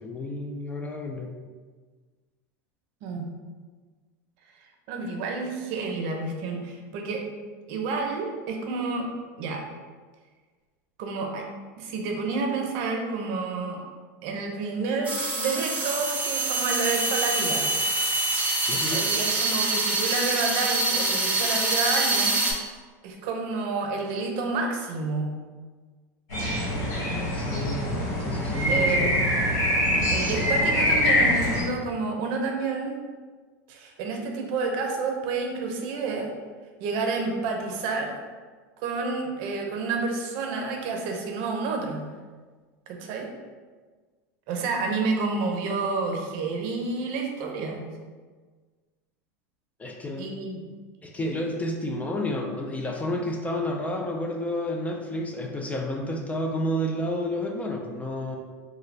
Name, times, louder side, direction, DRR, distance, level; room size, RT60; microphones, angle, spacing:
voice 1, 0.0-1.3 18.7-19.1 27.3-27.8 28.2-29.3 49.8-50.3 51.0-58.4, left 1 dB, 15° left, 2 dB, 0.3 m, -30 dB
voice 2, 4.9-7.2 7.7-9.1 9.4-9.6 11.0-11.5 11.8-13.8 14.2-17.7 18.7-22.4 23.0-25.3 28.7-29.2 30.1-33.0 33.7-36.3 36.8-38.1 38.8-42.0 42.9-43.3 44.5-47.8 50.2-50.6, right 4 dB, 60° right, 2 dB, 0.6 m, -29 dB
sound 1, 15.0-22.5, right 2 dB, 15° right, 0.7 m, -25 dB
sound 2, 26.3-31.6, left 1 dB, 70° left, 1.4 m, -24 dB
3.3 x 2.2 x 3.2 m, 1.4 s
supercardioid pair, 115°, 9 cm